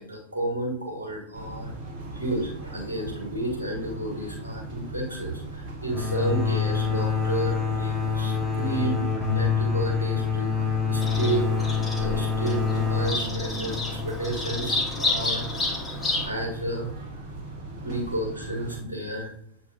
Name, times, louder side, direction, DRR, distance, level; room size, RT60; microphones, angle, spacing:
voice 1, 0.0-1.7 2.1-9.0 9.3-11.5 12.0-16.0 16.2-16.9 17.8-19.3, right 2 dB, 80° right, -2 dB, 2.2 m, -31 dB
sound 1, 1.3-18.8, right 2 dB, 45° right, 1.8 m, -39 dB
sound 2, 5.9-15.4, left 6 dB, 10° right, 1.4 m, -27 dB
Bird vocalization bird call bird song, 11.0-16.3, left 2 dB, 15° left, 1.8 m, -30 dB
8.1 x 4.1 x 3.0 m, 0.70 s
figure-of-eight pair, 90°, 0 cm